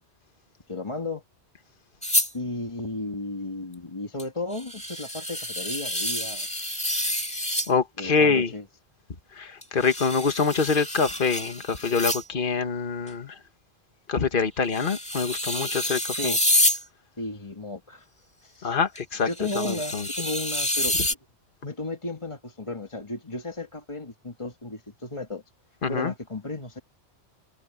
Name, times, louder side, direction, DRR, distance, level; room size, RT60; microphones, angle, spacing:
voice 1, 0.7-1.2 2.3-6.7 8.0-8.6 16.1-16.4 17.2-18.1 18.4-18.8 19.2-21.2 21.6-25.4 25.9-26.8, left 2 dB, 25° left, 1.9 m, -34 dB
sound 1, 2.0-2.3 4.2-4.3 4.5-7.7 9.6-12.2 13.1-13.2 14.7-16.8 19.0-19.1 19.3-21.1, equal, 5° left, 1.9 m, -28 dB
voice 2, 7.7-8.5 9.4-13.3 14.1-16.4 18.6-19.3 19.5-20.0 25.8-26.1, left 5 dB, 50° left, 1.6 m, -25 dB
open air
omnidirectional pair, 1.2 m